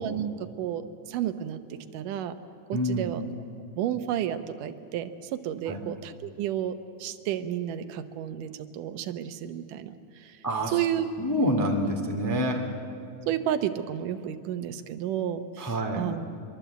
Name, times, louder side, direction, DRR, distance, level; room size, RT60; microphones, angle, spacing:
voice 1, 0.0-2.3 2.7-3.2 3.8-6.7 7.0-10.4 10.7-11.1 13.3-16.3, right 10 dB, 80° right, 10 dB, 2.5 m, -31 dB
voice 2, 2.7-3.2 5.7-5.8 10.4-10.8 11.2-12.7 15.6-16.1, equal, 10° left, 2 dB, 1.2 m, -27 dB
24.5 x 23.0 x 8.1 m, 2.5 s
omnidirectional pair, 3.7 m